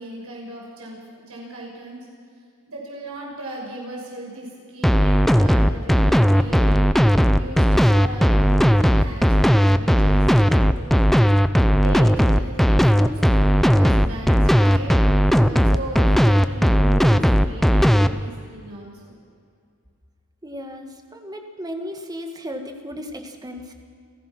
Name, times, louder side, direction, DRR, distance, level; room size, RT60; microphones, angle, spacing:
voice 1, 0.0-2.1 2.7-6.8 7.4-11.0 11.8-12.1 12.3-19.1, right 1 dB, 75° right, -2 dB, 6.1 m, -37 dB
sound 1, 4.8-18.1, equal, ahead, 0.6 m, -16 dB
voice 2, 20.4-23.7, equal, 20° right, 4 dB, 1.8 m, -35 dB
29.5 x 15.5 x 6.1 m, 2.2 s
head